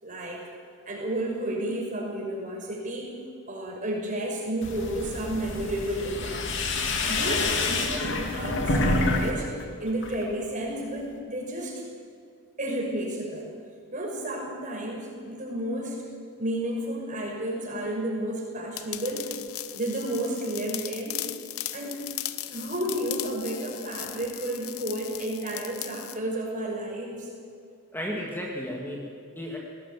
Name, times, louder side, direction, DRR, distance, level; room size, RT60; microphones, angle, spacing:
voice 1, 0.0-0.4 0.9-3.2 3.5-6.4 7.1-9.5 9.8-11.8 12.6-13.5 13.9-16.0 16.4-19.3 19.7-21.2 21.7-22.0 22.5-27.3, right 1 dB, 35° right, -1 dB, 5.9 m, -32 dB
sound 1, 4.6-9.3 9.6-10.2, left 2 dB, 55° left, 2.7 m, -27 dB
sound 2, 18.8-26.2, left 14 dB, 75° left, 0.9 m, -37 dB
voice 2, 27.9-29.6, equal, 10° left, -2 dB, 2.2 m, -34 dB
20.5 x 18.0 x 9.2 m, 2.3 s
head